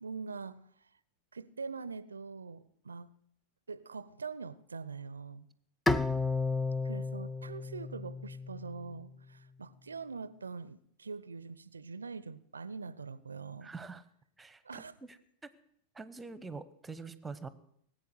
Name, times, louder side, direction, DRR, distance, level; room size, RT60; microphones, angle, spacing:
voice 1, 0.0-0.9 1.3-3.1 3.7-5.5 6.8-13.7 14.6-14.9, right 4 dB, 75° right, 0.5 m, -43 dB
Bowed string instrument, 5.9-9.1, left 3 dB, 5° left, 0.5 m, -33 dB
voice 2, 13.6-14.0 14.4-15.2 15.4-15.5 15.9-17.5, right 4 dB, 10° right, 0.9 m, -45 dB
19.0 x 8.4 x 7.9 m
figure-of-eight pair, 90°, 0 cm